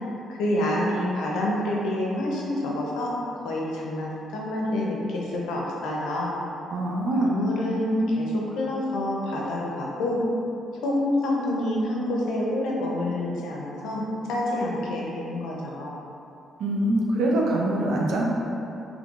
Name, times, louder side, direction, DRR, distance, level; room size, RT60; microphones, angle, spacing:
voice 1, 0.3-6.3 7.2-10.2 10.8-15.9, left 1 dB, 85° left, -3 dB, 0.6 m, -27 dB
voice 2, 6.7-7.3 16.6-18.2, right 1 dB, 80° right, -2 dB, 0.5 m, -24 dB
3.8 x 3.2 x 2.4 m, 2.8 s
cardioid pair, 90°, 0 cm